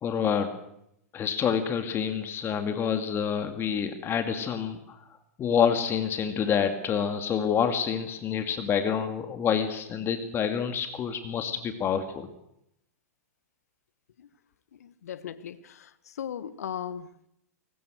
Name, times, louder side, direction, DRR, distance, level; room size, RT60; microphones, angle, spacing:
voice 1, 0.0-0.5 1.1-5.0 5.4-12.3, left 7 dB, 30° left, 2.3 m, -27 dB
voice 2, 14.7-17.1, left 9 dB, 75° left, 1.5 m, -38 dB
23.5 x 19.0 x 6.5 m
hypercardioid pair, 115°, 8 cm